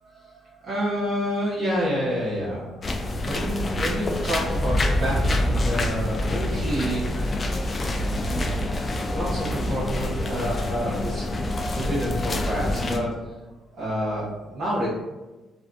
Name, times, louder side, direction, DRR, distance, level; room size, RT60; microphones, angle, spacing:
voice 1, 0.0-7.4 9.1-11.3 11.6-13.4 13.7-14.9, equal, 60° right, -9 dB, 0.8 m, -29 dB
sound 1, 2.8-13.0, left 1 dB, 35° left, 0.3 m, -26 dB
2.5 x 2.1 x 2.5 m, 1.1 s
cardioid pair, 90°, 0 cm